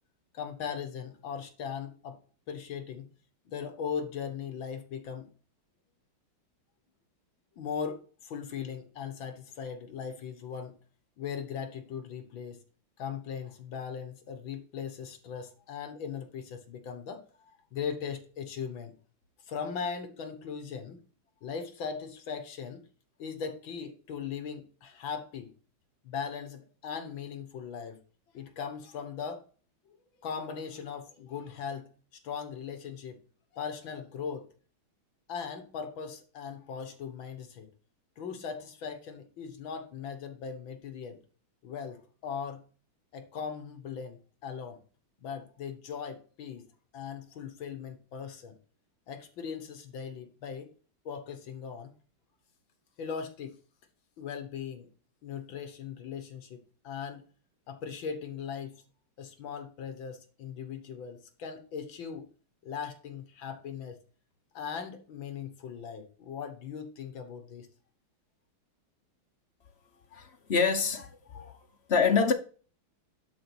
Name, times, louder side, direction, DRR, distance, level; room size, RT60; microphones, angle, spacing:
voice 1, 0.3-2.2 2.5-3.1 3.5-5.3 7.6-10.7 11.2-12.6 13.0-17.2 17.7-18.9 19.5-21.0 21.4-22.8 23.2-25.5 26.0-28.0 28.3-29.4 30.2-31.9 32.2-33.2 33.5-34.5 35.3-37.7 38.2-41.2 41.6-42.6 43.1-44.8 45.2-46.7 46.9-48.5 49.1-50.7 51.1-51.9 53.0-53.6 54.2-54.9 55.2-57.3 57.7-58.8 59.2-62.3 62.6-64.0 64.5-67.7, left 6 dB, 70° left, 2.1 m, -39 dB
voice 2, 70.1-71.6 71.9-72.3, left 5 dB, 50° left, 0.8 m, -26 dB
11.5 x 4.1 x 6.2 m
omnidirectional pair, 2.3 m